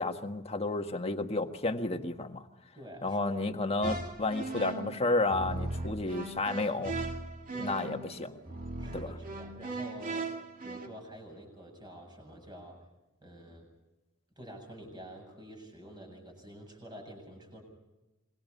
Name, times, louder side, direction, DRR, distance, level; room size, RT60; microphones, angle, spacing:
voice 1, 0.0-2.4 3.0-6.9 7.6-8.3 8.9-9.1, left 2 dB, 30° left, 5 dB, 1.6 m, -31 dB
voice 2, 2.7-3.5 7.5-8.4 8.8-10.3 10.6-12.8 13.2-13.7 14.4-17.6, right 1 dB, 20° right, 3 dB, 7.9 m, -48 dB
sound 1, 3.8-10.9, right 2 dB, 40° right, 2.6 m, -38 dB
27.0 x 23.0 x 5.5 m, 1.0 s
head